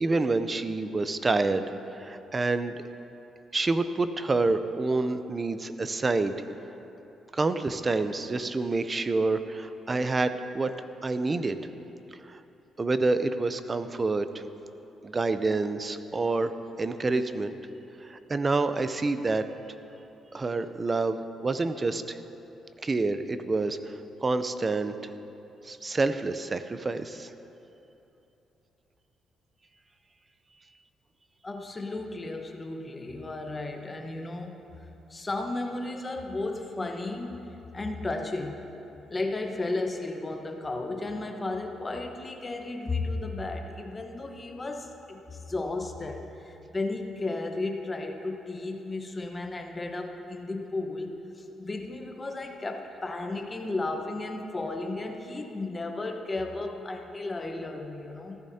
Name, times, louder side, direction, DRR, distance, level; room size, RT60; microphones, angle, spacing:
voice 1, 0.0-1.7 2.0-2.7 3.5-6.3 7.3-11.6 12.3-12.4 12.8-14.4 15.0-16.5 16.8-17.6 18.0-19.4 20.3-22.2 22.8-25.1 25.6-27.3, right 3 dB, 30° right, 11 dB, 0.6 m, -28 dB
voice 2, 31.4-34.6 35.1-38.6 39.1-58.4, left 2 dB, 25° left, 3 dB, 1.2 m, -34 dB
15.5 x 13.5 x 2.8 m, 3.0 s
cardioid pair, 90°, 0 cm